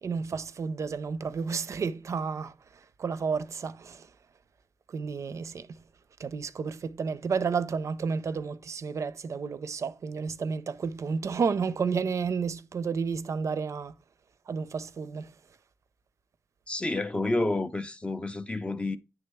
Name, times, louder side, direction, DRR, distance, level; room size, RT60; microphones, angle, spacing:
voice 1, 0.0-4.1 4.9-5.8 6.2-13.9 14.5-15.3, right 5 dB, 55° right, 0.4 m, -31 dB
voice 2, 16.7-19.0, left 2 dB, 20° left, 0.3 m, -29 dB
9.7 x 3.5 x 3.4 m
wide cardioid pair, 165°, 6 cm